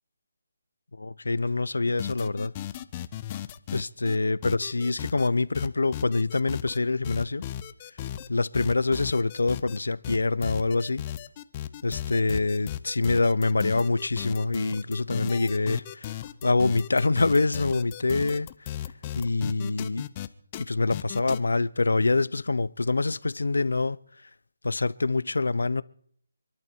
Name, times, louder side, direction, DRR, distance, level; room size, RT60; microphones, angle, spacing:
voice 1, 0.9-2.5 3.7-7.4 8.3-11.0 11.8-18.7 19.1-20.1 20.6-24.0 24.2-24.3 24.6-25.8, left 3 dB, 85° left, 0.6 m, -25 dB
sound 1, 1.9-4.2 4.4-5.3 5.5-6.8 7.0-8.3 8.5-9.8 10.0-20.3 20.5-20.6 20.9-21.4, left 12 dB, 25° left, 0.7 m, -36 dB
28.0 x 11.5 x 4.6 m
hypercardioid pair, 160°, 0 cm